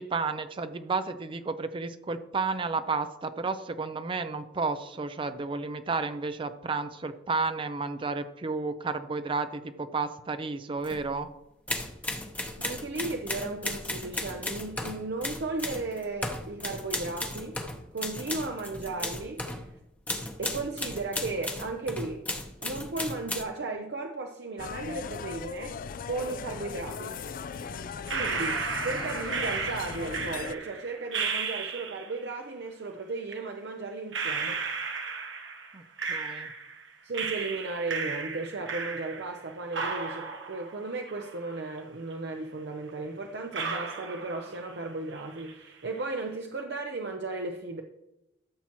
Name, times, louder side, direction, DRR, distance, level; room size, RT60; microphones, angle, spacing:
voice 1, 0.0-11.3 35.7-35.8 36.1-36.5, right 4 dB, 30° right, 10 dB, 0.4 m, -32 dB
sound 1, 10.8-11.0 11.7-19.6 20.1-23.4, left 1 dB, 10° left, 0.8 m, -35 dB
voice 2, 12.6-17.6 17.9-19.7 20.4-22.2 22.6-25.8 26.1-27.2 28.1-28.6 28.8-34.6 37.0-47.8, right 3 dB, 65° right, 3 dB, 0.7 m, -35 dB
sound 2, 24.6-30.6, left 5 dB, 50° left, 0.4 m, -38 dB
sound 3, 28.1-32.2 33.3-33.4 34.1-36.8 37.1-39.4 39.7-41.8 42.1-42.2 42.9-43.0 43.5-44.9 45.1-45.7, right 5 dB, 90° right, 1.1 m, -34 dB
13.5 x 7.1 x 3.0 m, 0.88 s
head